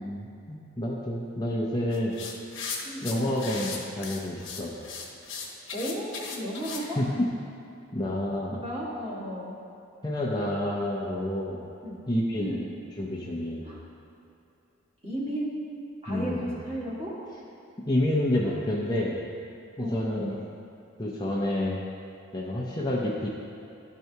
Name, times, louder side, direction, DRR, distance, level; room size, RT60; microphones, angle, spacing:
voice 1, 0.0-2.2 3.0-4.7 7.0-7.3 7.9-8.6 10.0-11.6 12.1-12.5 13.0-13.7 16.1-16.5 17.9-19.2 19.8-20.4 21.0-21.8 22.3-23.3, left 1 dB, 20° left, -4 dB, 0.5 m, -28 dB
sound 1, 1.9-6.8, left 5 dB, 60° left, 1.0 m, -37 dB
voice 2, 2.8-3.4 5.7-7.0 8.5-9.6 11.8-12.0 12.4-12.7 13.6-13.8 15.0-15.5 16.0-17.1 18.4-18.6 19.8-20.4, equal, 30° right, -7 dB, 1.6 m, -34 dB
12.0 x 4.5 x 2.8 m, 2.7 s
head